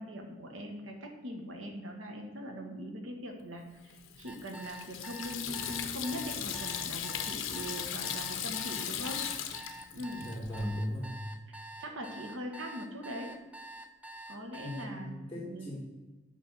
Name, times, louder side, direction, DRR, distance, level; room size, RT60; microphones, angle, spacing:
voice 1, 0.0-3.9 4.2-9.6 9.9-10.2 11.5-13.3 14.3-15.8, equal, 75° right, 2 dB, 1.3 m, -41 dB
Water tap faucet / Sink (filling or washing), 3.9-10.6, left 9 dB, 80° left, 0.7 m, -38 dB
sound 1, 4.3-14.9, right 1 dB, 5° right, 0.4 m, -47 dB
voice 2, 9.9-11.2 14.6-15.8, equal, 10° left, -12 dB, 2.5 m, -38 dB
9.3 x 3.5 x 6.2 m, 1.2 s
head